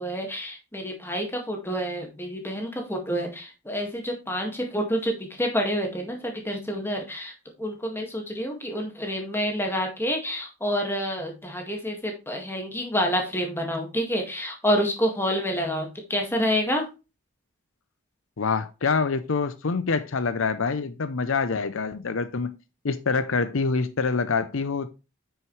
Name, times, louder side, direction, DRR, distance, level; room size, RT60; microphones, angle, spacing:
voice 1, 0.0-7.3 7.6-16.9, equal, 10° left, 1.9 m, -28 dB
voice 2, 18.4-22.5 22.8-24.9, left 4 dB, 65° left, 0.6 m, -26 dB
9.4 x 6.4 x 3.2 m
head